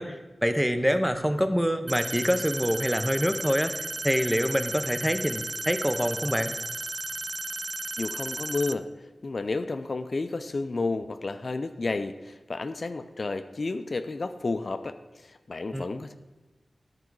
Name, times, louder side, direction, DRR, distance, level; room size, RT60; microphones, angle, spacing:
voice 1, 0.0-6.6 15.7-15.8, equal, 5° right, 8 dB, 0.7 m, -26 dB
sound 1, 1.9-8.7, right 2 dB, 40° right, 0.3 m, -34 dB
voice 2, 8.0-8.9 9.2-14.9 15.2-16.1, left 3 dB, 55° left, 10 dB, 0.4 m, -31 dB
11.0 x 4.7 x 4.6 m, 1.1 s
cardioid pair, 55°, 0 cm